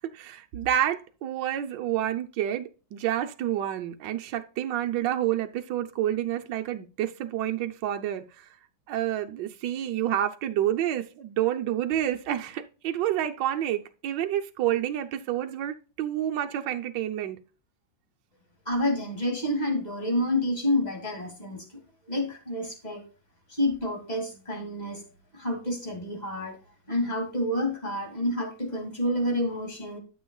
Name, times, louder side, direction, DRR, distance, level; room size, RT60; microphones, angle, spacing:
voice 1, 0.1-8.4 8.9-17.4, right 11 dB, 75° right, 1.4 m, -29 dB
voice 2, 18.7-21.7 22.1-23.0 23.5-25.0 25.3-26.6 26.9-30.0, left 1 dB, 20° left, 2.5 m, -28 dB
12.5 x 7.0 x 2.3 m
omnidirectional pair, 2.0 m